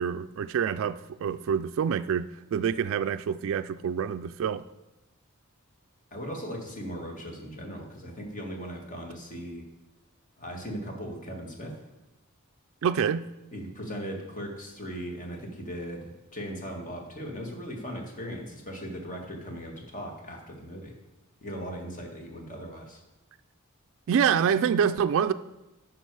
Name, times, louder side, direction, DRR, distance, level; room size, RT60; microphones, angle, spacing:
voice 1, 0.0-4.6 12.8-13.3 24.1-25.3, right 7 dB, 65° right, 0.3 m, -26 dB
voice 2, 6.1-9.6 10.4-11.8 13.5-20.9 21.4-23.0, equal, 35° left, 1.8 m, -38 dB
10.0 x 6.1 x 4.7 m
head